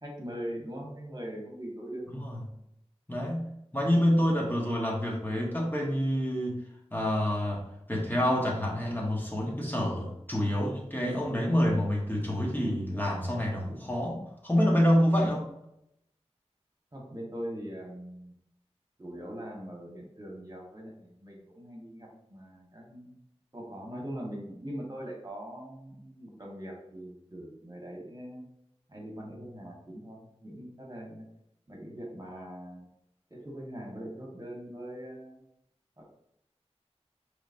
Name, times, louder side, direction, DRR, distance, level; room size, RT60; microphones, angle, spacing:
voice 1, 0.0-2.0 16.9-18.3 19.0-23.1 23.5-28.4 28.9-31.2 31.7-32.9 33.3-35.4 36.0-36.1, equal, 35° right, -2 dB, 1.4 m, -41 dB
voice 2, 3.1-6.6 6.9-15.5, equal, 15° left, -2 dB, 1.4 m, -27 dB
5.0 x 3.3 x 2.7 m, 0.79 s
wide cardioid pair, 40°, 11 cm